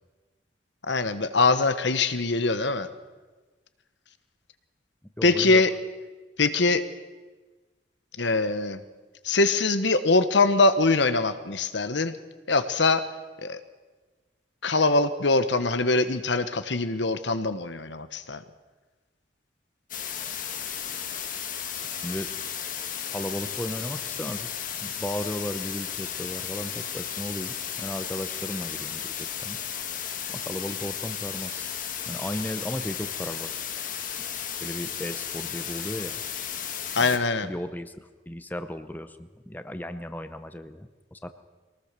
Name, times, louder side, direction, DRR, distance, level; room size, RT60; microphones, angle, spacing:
voice 1, 0.9-2.9 5.2-5.7 6.4-6.8 8.2-8.8 9.2-12.2 12.5-13.0 13.4-13.6 14.6-18.4 36.9-37.5, left 3 dB, 75° left, 11 dB, 1.3 m, -23 dB
voice 2, 5.2-5.6 22.0-22.3 23.1-24.5 24.8-29.6 30.3-31.7 32.1-33.5 34.1-34.3 34.6-36.2 37.0-37.2 37.4-41.3, equal, 10° left, 9 dB, 0.8 m, -35 dB
sound 1, 19.9-37.2, left 8 dB, 45° left, 1.8 m, -34 dB
23.5 x 18.5 x 6.8 m, 1.3 s
head